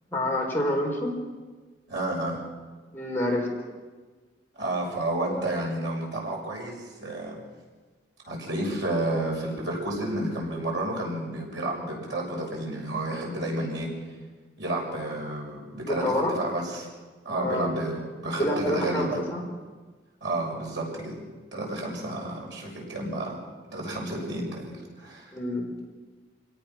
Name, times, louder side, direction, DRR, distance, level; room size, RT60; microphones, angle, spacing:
voice 1, 0.1-1.1 2.9-3.5 15.9-16.3 17.3-17.7 18.4-19.1 19.3-19.4 25.3-25.7, left 1 dB, 10° left, -3 dB, 4.6 m, -27 dB
voice 2, 1.9-2.4 4.6-7.4 8.2-13.9 14.6-16.9 17.2-19.2 20.2-21.2 21.5-23.4 23.7-25.3, right 1 dB, 80° right, -2 dB, 6.7 m, -31 dB
27.0 x 18.0 x 6.0 m, 1.3 s
head